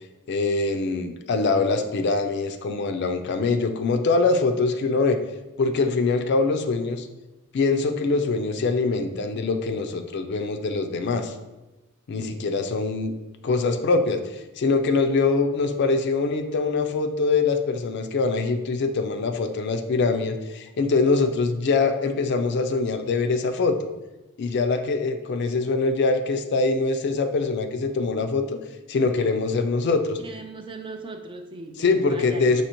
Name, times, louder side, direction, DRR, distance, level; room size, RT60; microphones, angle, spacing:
voice 1, 0.3-5.2 5.6-7.1 7.5-11.3 12.1-13.1 13.4-23.8 24.4-28.5 28.9-30.2 31.8-32.6, left 3 dB, 55° left, 7 dB, 0.4 m, -23 dB
voice 2, 30.2-32.6, right 3 dB, 25° right, 5 dB, 0.3 m, -39 dB
5.5 x 2.9 x 2.9 m, 1.1 s
head